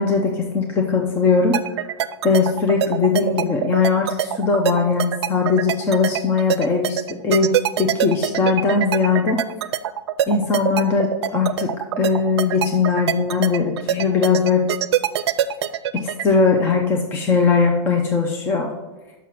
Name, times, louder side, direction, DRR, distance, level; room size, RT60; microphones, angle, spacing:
voice 1, 0.0-1.6 2.2-9.4 10.3-14.6 15.9-18.7, left 4 dB, 15° left, 2 dB, 0.5 m, -20 dB
sound 1, 1.5-16.2, right 11 dB, 75° right, 0.5 m, -23 dB
6.1 x 5.9 x 5.7 m, 1.1 s
supercardioid pair, 160°, 14 cm